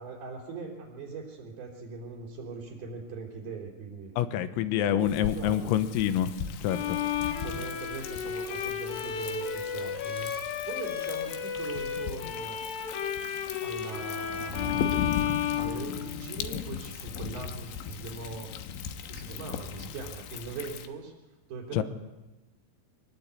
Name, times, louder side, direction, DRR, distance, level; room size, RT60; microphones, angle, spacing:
voice 1, 0.0-4.1 4.8-5.8 7.4-12.6 13.6-14.9 15.5-18.5 19.1-21.1 21.5-21.8, right 4 dB, 50° right, -3 dB, 5.3 m, -41 dB
voice 2, 4.2-6.3 6.6-7.0 21.7-21.8, left 11 dB, 85° left, 10 dB, 3.9 m, -27 dB
Thunder, 5.0-20.9, left 8 dB, 70° left, 3.2 m, -38 dB
Bowed string instrument, 6.7-16.5, left 8 dB, 50° left, 3.4 m, -33 dB
24.5 x 21.0 x 8.4 m, 1.1 s
omnidirectional pair, 6.0 m